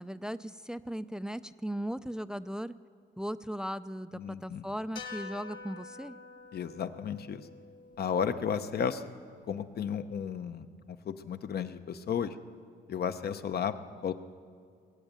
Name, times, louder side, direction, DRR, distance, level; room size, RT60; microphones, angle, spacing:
voice 1, 0.0-2.8 3.2-6.2, equal, 5° right, 14 dB, 0.4 m, -37 dB
voice 2, 4.1-4.7 6.5-7.4 8.0-9.0 9.5-10.7 11.0-12.3 12.9-13.7 14.0-14.1, left 7 dB, 55° left, 11 dB, 0.8 m, -33 dB
sound 1, 5.0-9.3, left 5 dB, 75° left, 2.5 m, -48 dB
20.5 x 8.1 x 8.8 m, 2.2 s
cardioid pair, 90°, 20 cm